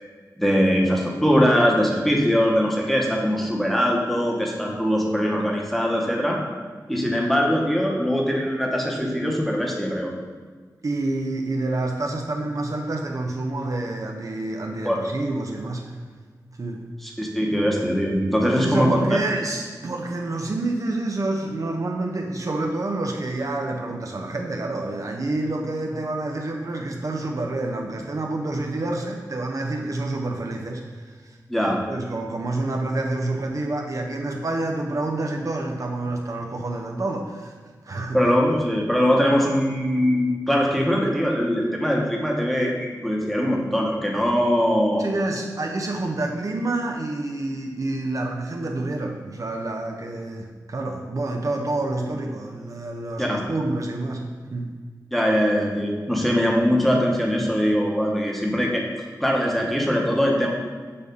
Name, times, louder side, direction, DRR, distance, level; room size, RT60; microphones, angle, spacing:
voice 1, 0.4-6.4 6.9-10.1 14.8-15.0 17.0-19.2 31.5-31.8 38.1-45.1 53.2-53.4 55.1-58.8 59.2-60.5, equal, ahead, -2 dB, 1.1 m, -21 dB
voice 2, 10.8-15.9 16.6-16.8 18.4-31.1 31.7-37.5 37.8-38.2 45.0-54.7, right 2 dB, 55° right, 1 dB, 0.6 m, -28 dB
6.8 x 2.7 x 5.2 m, 1.5 s
wide cardioid pair, 65°, 7 cm